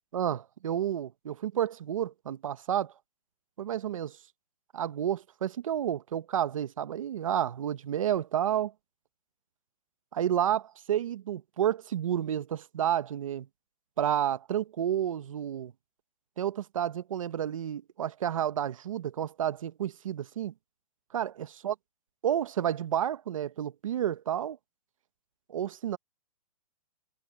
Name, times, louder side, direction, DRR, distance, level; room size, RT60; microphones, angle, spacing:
voice 1, 0.1-2.9 3.6-4.2 4.7-8.7 10.1-13.5 14.0-15.7 16.4-20.5 21.1-21.7 22.2-24.6 25.5-26.0, right 10 dB, 60° right, 1.2 m, -30 dB
hypercardioid pair, 175°, 20 cm